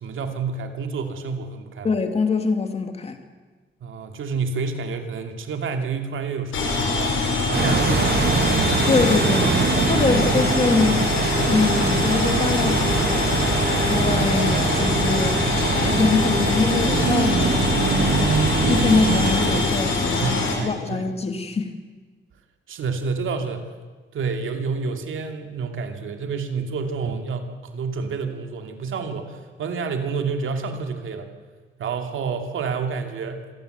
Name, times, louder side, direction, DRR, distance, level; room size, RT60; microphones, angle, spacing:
voice 1, 0.0-1.9 3.8-8.2 10.0-10.1 20.2-21.0 22.7-23.7 24.1-31.3 31.8-33.5, right 5 dB, 85° right, 6 dB, 2.5 m, -29 dB
voice 2, 1.8-3.2 8.9-9.5 9.9-11.1 11.5-13.4 13.8-15.4 15.7-18.4 18.7-21.7, left 4 dB, 30° left, 6 dB, 2.2 m, -24 dB
sound 1, 6.5-20.5, left 3 dB, 85° left, 5.4 m, -23 dB
sound 2, 7.5-19.6, right 6 dB, 55° right, 2.1 m, -24 dB
26.0 x 18.0 x 8.0 m, 1.4 s
wide cardioid pair, 175°, 20 cm